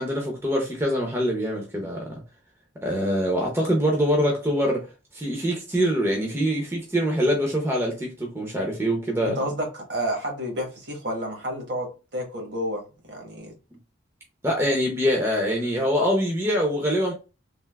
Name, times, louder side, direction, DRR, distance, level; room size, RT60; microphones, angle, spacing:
voice 1, 0.0-2.2 2.8-4.9 5.1-9.4 14.4-17.1, equal, 15° right, 0.6 m, -24 dB
voice 2, 9.2-11.9 12.1-13.5, equal, 60° right, 1.1 m, -30 dB
3.4 x 2.5 x 2.3 m
head